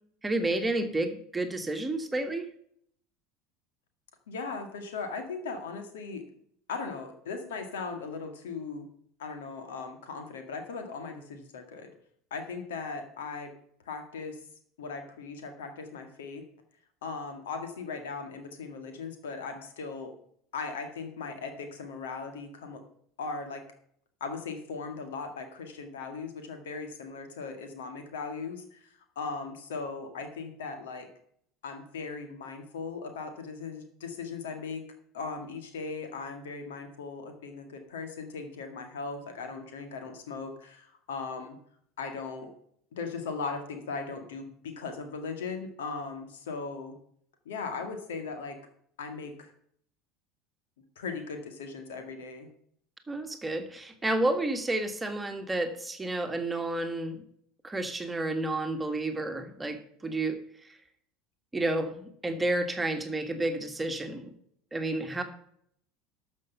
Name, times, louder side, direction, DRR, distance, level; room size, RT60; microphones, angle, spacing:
voice 1, 0.2-2.5 53.1-57.2 57.6-60.4 61.5-64.3 64.7-65.2, right 2 dB, 15° right, 6 dB, 1.7 m, -30 dB
voice 2, 4.3-6.3 6.7-8.9 9.2-11.9 12.3-13.5 13.9-14.4 14.8-16.4 17.0-20.1 20.5-22.8 23.2-23.6 24.2-31.1 31.6-34.8 35.1-41.6 42.0-42.5 42.9-46.9 47.5-48.6 49.0-49.5 51.0-52.5, left 4 dB, 65° left, 6 dB, 2.0 m, -38 dB
12.5 x 6.4 x 5.6 m, 0.65 s
figure-of-eight pair, 70°, 0 cm